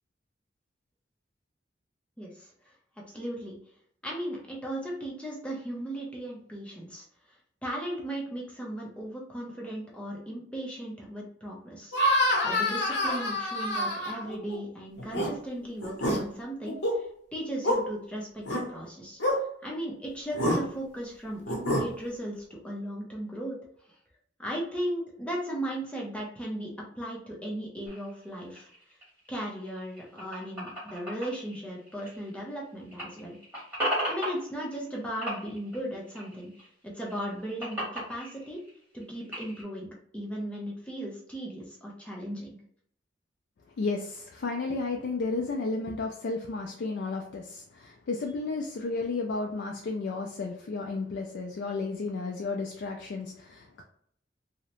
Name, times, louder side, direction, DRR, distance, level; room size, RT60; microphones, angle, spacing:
voice 1, 2.2-2.5 3.1-3.6 4.0-7.4 7.6-19.2 19.6-23.6 23.9-24.0 24.4-26.7 27.0-28.7 29.3-33.4 34.1-36.5 36.8-38.6 38.9-39.9 40.1-42.6, right 1 dB, 5° left, -3 dB, 0.5 m, -37 dB
sound 1, 11.9-14.6 15.0-15.3 15.8-16.2 16.6-16.9 17.6-17.8 18.5-18.6 19.2-19.4 20.3-20.6 21.5-21.8, left 1 dB, 85° left, 0.8 m, -27 dB
sound 2, 27.9-32.6 32.9-35.0 35.2-36.7 37.0-39.6, equal, 10° right, 1.3 m, -37 dB
voice 2, 43.8-53.8, left 3 dB, 70° left, 1 dB, 0.3 m, -33 dB
2.7 x 2.0 x 2.9 m, 0.64 s
head